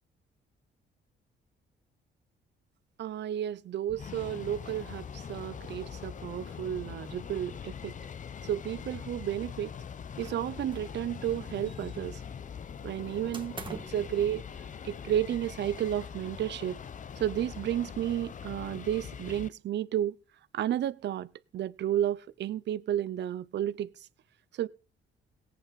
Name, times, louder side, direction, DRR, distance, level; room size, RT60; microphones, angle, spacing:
voice 1, 3.0-8.0 8.4-9.7 10.2-12.2 12.8-14.5 14.8-16.8 17.2-20.2 20.5-23.9 24.6-24.7, right 11 dB, 60° right, 0.6 m, -32 dB
sound 1, 3.9-19.5, left 7 dB, 40° left, 0.7 m, -42 dB
sound 2, 10.2-11.0 11.3-12.2 13.3-14.1, right 4 dB, 25° right, 1.7 m, -45 dB
17.5 x 8.6 x 4.1 m
cardioid pair, 90°, 20 cm